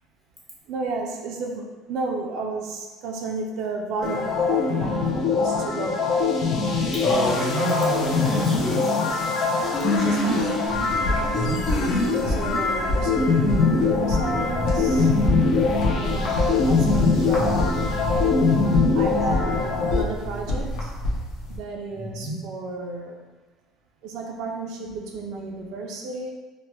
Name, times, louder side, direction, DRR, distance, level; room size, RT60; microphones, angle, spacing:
voice 1, 0.7-6.0 9.9-10.7 11.1-11.4 12.3-15.1 15.9-17.8 18.9-20.9 21.5-23.2 24.0-26.3, right 3 dB, 60° right, 1 dB, 0.3 m, -33 dB
sound 1, 4.0-20.0, left 4 dB, 40° left, 0.3 m, -22 dB
voice 2, 6.9-9.2 9.6-9.7 11.3-11.6 21.9-22.3, right 1 dB, 10° left, -8 dB, 0.9 m, -28 dB
sound 2, 10.7-21.6, left 1 dB, 70° left, 0.7 m, -28 dB
3.0 x 2.1 x 2.9 m, 1.3 s
cardioid pair, 165°, 0 cm